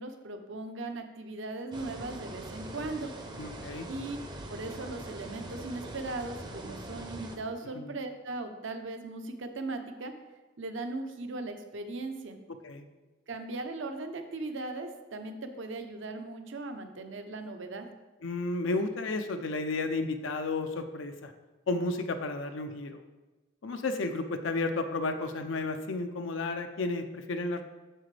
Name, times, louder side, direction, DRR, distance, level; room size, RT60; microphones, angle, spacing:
voice 1, 0.0-3.1 3.9-4.2 4.5-10.1 10.6-12.4 13.3-17.9, right 2 dB, 65° right, 6 dB, 0.7 m, -38 dB
sound 1, 1.7-7.4, right 1 dB, 20° right, 0.6 m, -42 dB
voice 2, 3.4-3.9 7.7-7.9 12.6-12.8 18.2-21.3 21.7-23.0 23.6-27.6, left 3 dB, 65° left, 7 dB, 0.5 m, -32 dB
7.7 x 6.7 x 3.3 m, 1.2 s
head